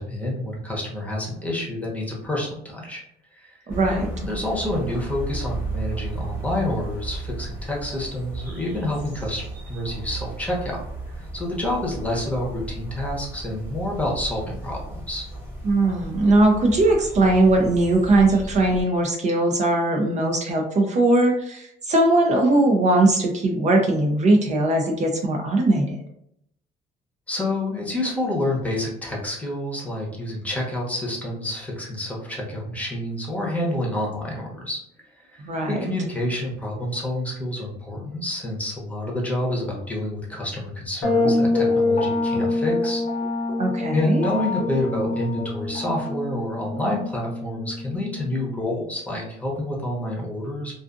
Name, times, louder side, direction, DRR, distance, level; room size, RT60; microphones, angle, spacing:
voice 1, 0.0-3.0 3.3-10.8 11.1-15.3 27.3-34.8 35.1-35.4 35.7-43.0 43.9-50.7, left 1 dB, 10° left, -3 dB, 0.8 m, -28 dB
sound 1, 3.7-18.8, right 2 dB, 10° right, 1.1 m, -34 dB
voice 2, 3.7-4.1 15.6-26.0 35.4-35.8 43.6-44.3, right 2 dB, 45° right, 2 dB, 0.5 m, -20 dB
sound 2, 41.0-48.6, left 2 dB, 50° left, 0.7 m, -25 dB
2.5 x 2.4 x 2.5 m, 0.74 s
cardioid pair, 110°, 17 cm